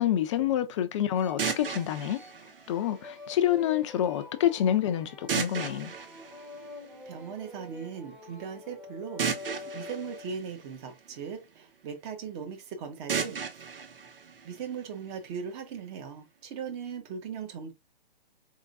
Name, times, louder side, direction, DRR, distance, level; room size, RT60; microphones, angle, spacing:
voice 1, 0.0-2.2 2.7-5.9, left 11 dB, 30° left, 0.6 m, -27 dB
sound 1, 1.1-10.5, left 2 dB, 5° right, 1.1 m, -46 dB
sound 2, 1.4-3.4 5.3-7.3 9.2-11.4 13.1-15.1, right 6 dB, 70° right, 1.0 m, -35 dB
voice 2, 7.1-9.3 9.7-13.7 14.4-17.7, right 6 dB, 30° right, 1.2 m, -39 dB
4.4 x 3.7 x 2.5 m
hypercardioid pair, 135°, 29 cm